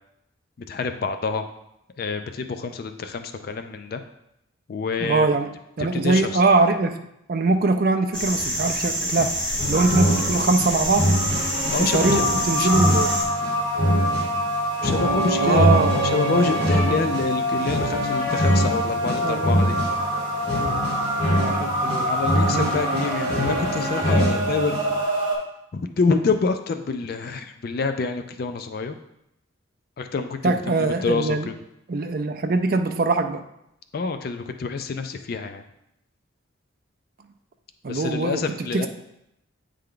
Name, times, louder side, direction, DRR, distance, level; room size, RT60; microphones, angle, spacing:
voice 1, 0.7-1.5 2.0-4.0 4.7-5.3 5.8-6.4 9.2-9.3 11.7-12.2 12.6-12.7 14.8-19.8 22.1-24.8 25.7-28.9 30.0-31.6 33.9-35.6 37.9-38.9, left 4 dB, 50° left, 8 dB, 0.4 m, -27 dB
voice 2, 5.0-5.5 5.8-7.0 7.3-9.4 9.7-11.1 11.9-13.1 15.4-16.0 16.8-17.0 19.2-19.6 21.3-22.1 22.5-23.1 30.4-31.5 31.9-33.4 37.8-38.4 38.7-38.9, right 3 dB, 45° right, 7 dB, 0.4 m, -22 dB
sound 1, 8.1-13.2, equal, 5° left, 1.6 m, -27 dB
sound 2, 9.6-25.0, equal, 25° left, 2.3 m, -24 dB
sound 3, 9.7-25.3, equal, 25° right, 1.6 m, -27 dB
8.5 x 3.4 x 3.8 m, 0.81 s
head